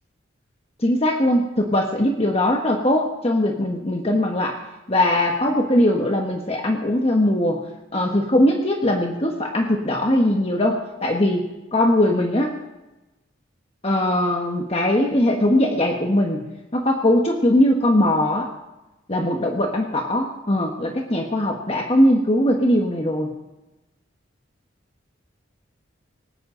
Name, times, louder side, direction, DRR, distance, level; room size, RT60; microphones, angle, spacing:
voice 1, 0.8-4.6 4.9-7.6 7.9-12.6 13.8-18.5 19.1-23.3, left 1 dB, 30° left, 1 dB, 1.4 m, -20 dB
19.0 x 18.5 x 3.9 m, 1.0 s
head